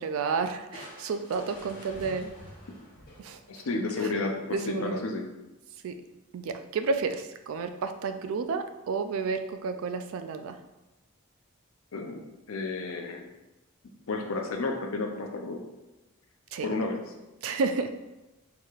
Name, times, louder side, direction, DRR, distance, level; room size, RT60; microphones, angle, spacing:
voice 1, 0.0-2.3 3.2-3.4 4.5-5.0 5.8-5.9 6.3-10.6 16.5-16.8 17.4-17.9, right 4 dB, 75° right, 8 dB, 0.3 m, -31 dB
Crushing, 0.7-4.1, left 1 dB, 40° left, 0.8 m, -48 dB
voice 2, 3.5-5.3 11.9-13.3 14.1-15.6 16.6-17.1, left 3 dB, 75° left, 3 dB, 0.6 m, -32 dB
4.5 x 2.9 x 2.4 m, 1.0 s
head